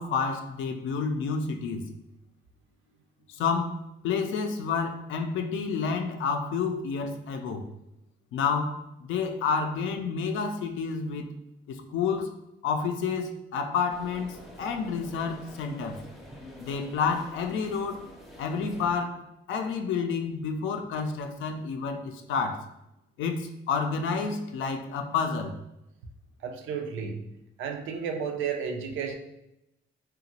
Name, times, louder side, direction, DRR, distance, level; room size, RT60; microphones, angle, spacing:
voice 1, 0.0-1.9 3.3-7.7 8.3-11.3 11.7-12.3 12.6-16.0 16.6-18.0 18.4-22.7 23.2-25.6, left 5 dB, 80° left, 5 dB, 0.4 m, -29 dB
sound 1, 13.9-18.9, equal, ahead, 0.5 m, -47 dB
voice 2, 26.4-27.3 27.6-29.1, right 6 dB, 80° right, 4 dB, 0.4 m, -32 dB
2.9 x 2.3 x 2.8 m, 0.88 s
cardioid pair, 90°, 20 cm